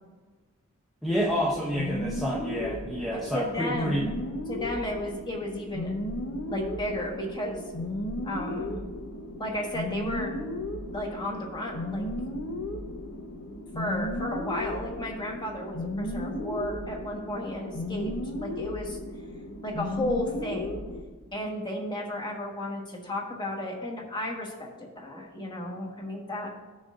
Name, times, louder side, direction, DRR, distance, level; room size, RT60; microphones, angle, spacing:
voice 1, 1.0-4.1, equal, ahead, -5 dB, 0.7 m, -28 dB
sound 1, 1.1-21.0, left 1 dB, 85° left, 1.0 m, -35 dB
voice 2, 3.1-4.1 4.5-5.9 6.5-7.6 8.2-8.8 9.4-10.3 10.9-12.1 13.7-19.0 19.6-20.8 21.3-26.5, left 1 dB, 20° left, -1 dB, 1.4 m, -33 dB
15.5 x 6.2 x 2.5 m, 1.3 s
head